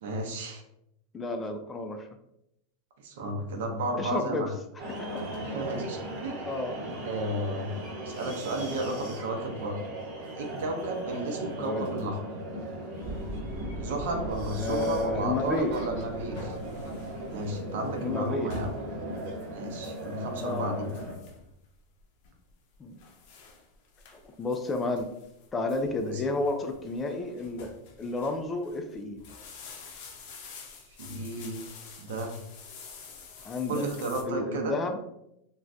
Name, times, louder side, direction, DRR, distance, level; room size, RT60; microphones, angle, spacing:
voice 1, 0.0-0.6 3.0-4.5 5.4-6.4 7.0-7.7 8.0-9.8 10.3-12.2 13.8-16.6 17.3-18.7 19.5-20.9 26.0-26.2 30.9-31.6 32.0-32.4 33.7-34.8, right 1 dB, 75° right, 3 dB, 0.7 m, -33 dB
voice 2, 1.1-2.1 4.0-4.5 5.1-5.3 6.5-7.1 11.6-11.9 14.6-15.7 18.0-18.5 20.4-20.9 22.8-23.0 24.4-25.1 25.5-27.7 28.0-29.2 33.4-33.8 34.3-35.1, left 2 dB, 20° left, 6 dB, 0.3 m, -31 dB
sound 1, 4.8-21.2, right 1 dB, 55° right, 0.9 m, -38 dB
sound 2, 13.0-17.8, right 1 dB, 25° right, 0.9 m, -41 dB
sound 3, 15.6-34.2, left 3 dB, 60° left, 0.6 m, -48 dB
2.5 x 2.3 x 3.3 m, 0.80 s
supercardioid pair, 140°, 0 cm